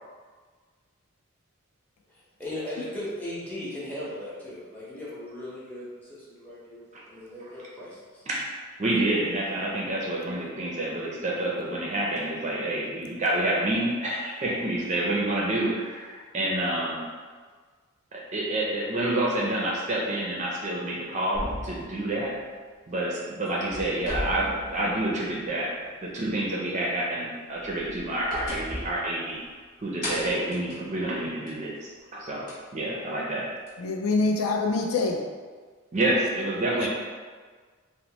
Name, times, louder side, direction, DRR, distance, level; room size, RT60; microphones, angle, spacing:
voice 1, 2.1-8.2, left 1 dB, 5° left, -9 dB, 0.7 m, -38 dB
voice 2, 8.8-17.0 18.1-22.3 22.9-25.7 26.0-29.4 29.8-33.4 35.9-36.9, right 1 dB, 30° right, -3 dB, 0.4 m, -28 dB
sound 1, 21.3-23.1 23.4-25.5 25.8-25.9 27.5-29.6 30.0-31.7 32.5-32.6 33.7-33.8, equal, 40° left, 0.8 m, -37 dB
voice 3, 33.8-35.2 36.8-36.9, left 3 dB, 75° left, 1 dB, 0.4 m, -25 dB
3.0 x 2.0 x 2.8 m, 1.5 s
head